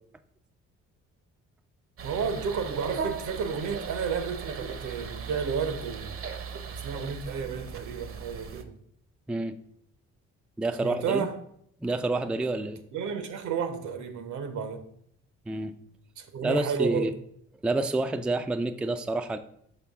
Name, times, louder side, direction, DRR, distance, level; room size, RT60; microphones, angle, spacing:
sound 1, 2.0-8.6, right 5 dB, 45° right, 0.7 m, -38 dB
voice 1, 2.0-6.2 6.7-8.8 10.8-11.3 12.9-14.9 16.2-17.1, right 6 dB, 75° right, 0.9 m, -32 dB
voice 2, 9.3-9.6 10.6-11.3 11.8-12.8 15.5-15.7 16.4-17.1 17.6-19.4, right 2 dB, 5° right, 0.3 m, -28 dB
5.9 x 5.2 x 3.5 m
cardioid pair, 90°, 30 cm